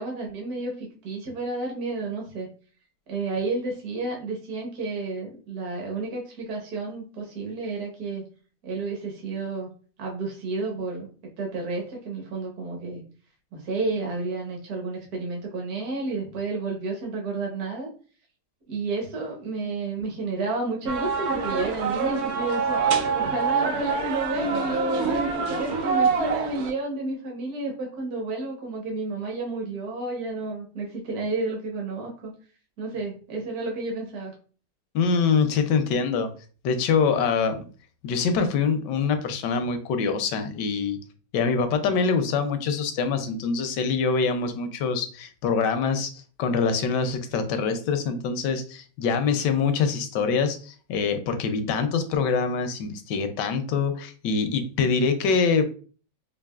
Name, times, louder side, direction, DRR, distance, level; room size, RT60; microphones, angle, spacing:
voice 1, 0.0-2.5 3.1-8.2 8.6-9.7 10.0-11.1 11.4-13.0 13.5-17.9 18.7-32.3 32.8-34.3, right 3 dB, 65° right, 0 dB, 1.5 m, -31 dB
sound 1, 20.9-26.7, right 5 dB, 80° right, 0.6 m, -26 dB
voice 2, 34.9-36.3 36.6-37.6 38.0-41.0 41.3-46.1 46.4-55.6, left 5 dB, 85° left, 8 dB, 1.3 m, -24 dB
4.7 x 2.6 x 2.3 m, 0.39 s
omnidirectional pair, 1.8 m